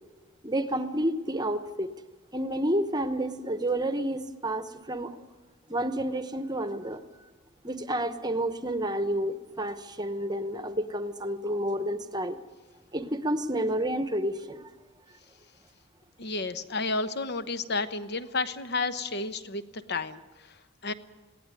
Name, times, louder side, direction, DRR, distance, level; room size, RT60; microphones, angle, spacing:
voice 1, 0.4-1.9 2.3-5.2 5.7-7.0 7.6-12.4 12.9-14.7, right 1 dB, 20° right, 10 dB, 1.0 m, -30 dB
voice 2, 16.2-19.6 19.9-20.2 20.8-20.9, left 3 dB, 50° left, 11 dB, 1.0 m, -31 dB
20.5 x 17.0 x 9.7 m, 1.2 s
head